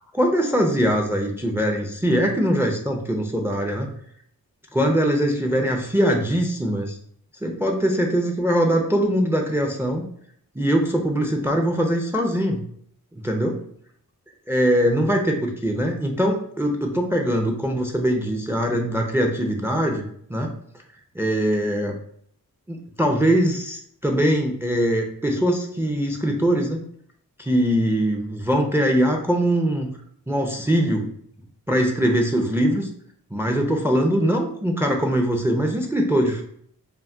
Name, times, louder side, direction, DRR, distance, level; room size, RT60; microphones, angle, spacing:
voice 1, 0.1-3.9 4.7-7.0 7.4-10.0 10.5-12.6 13.1-13.6 14.5-20.0 20.3-20.5 21.1-22.0 22.7-26.8 27.4-30.0 30.3-31.1 31.7-32.9 33.3-36.4, equal, 5° right, 3 dB, 0.4 m, -22 dB
2.3 x 2.2 x 3.5 m, 0.64 s
cardioid pair, 50°, 38 cm